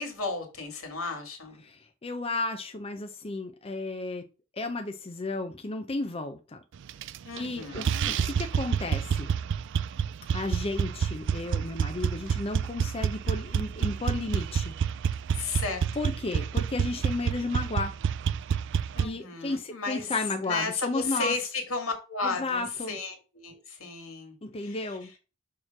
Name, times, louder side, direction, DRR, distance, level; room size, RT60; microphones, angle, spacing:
voice 1, 0.0-1.6 7.2-8.3 15.3-16.1 18.9-20.1 20.5-25.0, left 4 dB, 85° left, 2.1 m, -34 dB
voice 2, 1.6-4.3 4.5-6.6 7.4-9.3 10.3-14.7 16.0-17.9 19.0-21.3 22.2-23.0 24.4-25.1, left 2 dB, 30° left, 0.6 m, -33 dB
sound 1, 6.9-7.5 7.7-19.1, right 7 dB, 60° right, 0.3 m, -28 dB
6.5 x 3.1 x 5.9 m
head